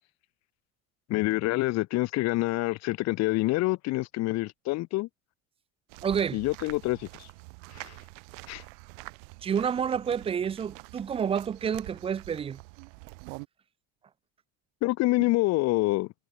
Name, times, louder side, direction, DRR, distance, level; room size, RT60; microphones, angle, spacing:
voice 1, 1.1-5.1 6.3-7.3 7.7-8.0 8.5-8.6 14.8-16.1, left 20 dB, 45° left, 0.8 m, -27 dB
sound 1, 5.9-13.5, right 37 dB, 90° right, 3.4 m, -46 dB
voice 2, 6.0-6.4 9.4-12.6, right 7 dB, 15° right, 0.4 m, -29 dB
cardioid pair, 160°, 36 cm